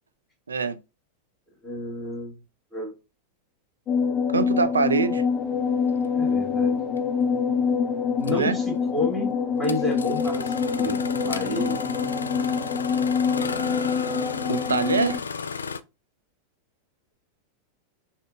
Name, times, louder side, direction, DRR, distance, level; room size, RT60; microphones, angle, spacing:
voice 1, 1.6-2.3 2.7-2.9 6.1-6.8 8.2-11.8, left 1 dB, ahead, 1.7 m, -30 dB
sound 1, 3.9-15.2, left 6 dB, 30° left, 0.8 m, -25 dB
voice 2, 4.3-5.2 8.2-8.6 14.5-15.2, right 5 dB, 75° right, 0.4 m, -24 dB
Engine starting, 7.0-7.1 8.2-8.4 9.6-15.8, left 5 dB, 75° left, 0.3 m, -34 dB
5.0 x 2.4 x 2.5 m
figure-of-eight pair, 90°, 0 cm